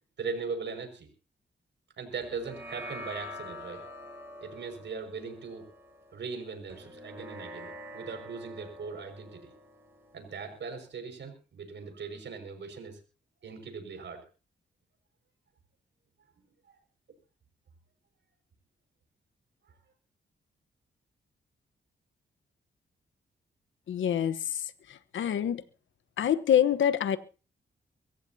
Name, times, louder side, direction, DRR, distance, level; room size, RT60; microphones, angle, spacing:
voice 1, 0.2-1.1 2.0-3.8 4.4-5.7 6.1-9.5 10.1-13.0 13.4-14.2 16.6-16.7, right 5 dB, 70° right, 6 dB, 5.8 m, -39 dB
sound 1, 2.2-10.9, left 1 dB, 10° right, 7.5 m, -46 dB
voice 2, 23.9-25.6 26.2-27.2, left 9 dB, 80° left, 14 dB, 1.1 m, -26 dB
24.0 x 15.0 x 2.8 m, 0.34 s
cardioid pair, 70°, 19 cm